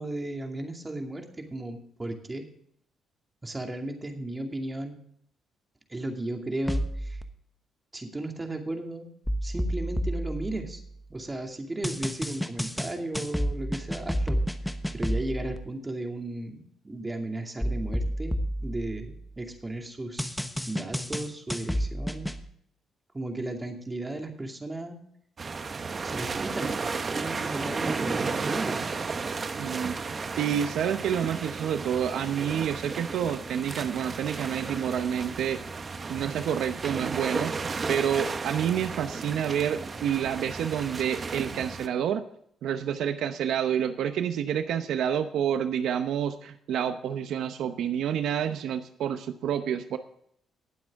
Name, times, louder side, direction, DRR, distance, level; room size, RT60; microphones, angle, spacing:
voice 1, 0.0-2.4 3.4-5.0 5.9-7.2 7.9-9.1 9.4-10.8 11.1-14.4 14.9-16.6 16.8-20.4 20.7-22.3 23.1-25.0 26.0-28.8, right 2 dB, 20° right, 3 dB, 2.4 m, -35 dB
sound 1, 6.7-7.2 9.3-11.1 11.8-15.6 17.6-19.5 20.2-22.4, equal, 5° left, 1.0 m, -30 dB
sound 2, 25.4-41.9, right 4 dB, 35° right, 0.9 m, -33 dB
voice 2, 29.6-30.0 30.4-35.6 36.1-37.5 37.9-42.2 42.6-50.0, right 9 dB, 75° right, 9 dB, 0.8 m, -28 dB
19.0 x 7.6 x 3.6 m, 0.67 s
cardioid pair, 100°, 0 cm